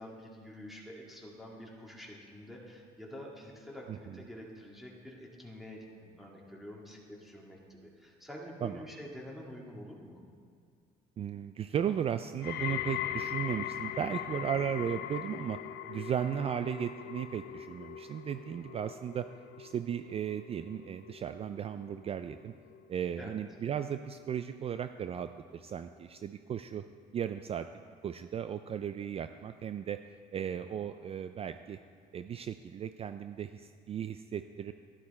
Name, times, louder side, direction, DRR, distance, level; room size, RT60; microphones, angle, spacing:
voice 1, 0.0-5.9 6.2-10.2 23.2-23.4, equal, ahead, -4 dB, 2.0 m, -47 dB
voice 2, 3.9-4.2 8.6-8.8 11.2-15.6 15.9-19.3 19.6-22.5 22.9-26.8 27.1-27.7 28.0-30.0 30.3-31.8 32.1-34.7, right 9 dB, 35° right, 10 dB, 0.3 m, -36 dB
sound 1, 12.4-23.5 23.9-24.4 25.1-25.2, left 11 dB, 85° left, 0.5 m, -41 dB
11.5 x 11.5 x 4.2 m, 2.2 s
cardioid pair, 110°, 17 cm